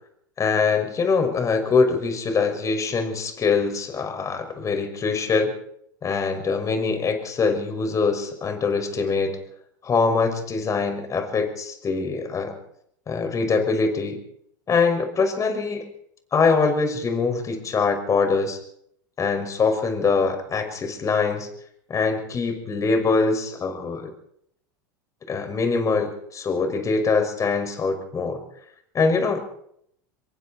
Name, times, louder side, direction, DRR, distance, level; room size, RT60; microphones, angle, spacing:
voice 1, 0.4-5.5 6.0-9.4 9.8-12.5 13.1-14.2 14.7-15.8 16.3-18.6 19.2-21.5 21.9-24.1 25.3-28.4 28.9-29.4, left 4 dB, 30° left, 6 dB, 6.0 m, -23 dB
25.0 x 22.5 x 4.5 m, 0.69 s
hypercardioid pair, 90°, 10 cm